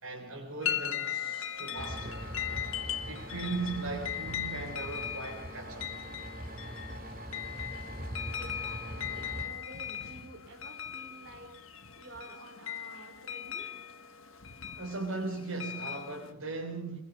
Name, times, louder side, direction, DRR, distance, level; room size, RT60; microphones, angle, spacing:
voice 1, 0.0-2.3 3.1-5.9 14.8-17.0, right 3 dB, 75° right, 3.8 m, -38 dB
sound 1, 0.6-16.3, left 9 dB, 65° left, 1.7 m, -39 dB
sound 2, 1.8-9.5, equal, 40° right, 2.7 m, -42 dB
voice 2, 8.3-13.7, right 1 dB, 55° right, 3.1 m, -50 dB
24.5 x 21.0 x 5.4 m
head